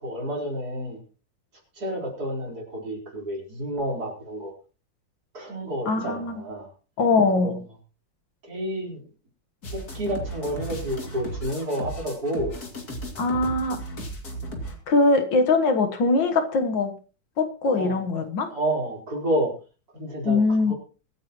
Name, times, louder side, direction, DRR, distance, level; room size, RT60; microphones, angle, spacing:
voice 1, 0.0-1.0 1.8-4.5 5.3-6.7 7.4-7.5 8.4-9.0 9.7-12.5 17.7-18.0 18.5-19.5 19.9-20.7, right 1 dB, 55° right, -1 dB, 4.9 m, -30 dB
voice 2, 5.9-6.4 7.0-7.6 13.2-13.8 14.9-16.9 17.4-18.5 20.3-20.7, left 3 dB, 85° left, 6 dB, 2.1 m, -22 dB
sound 1, 9.6-14.8, right 1 dB, 55° left, 3.2 m, -35 dB
23.5 x 9.2 x 3.0 m, 0.36 s
omnidirectional pair, 2.0 m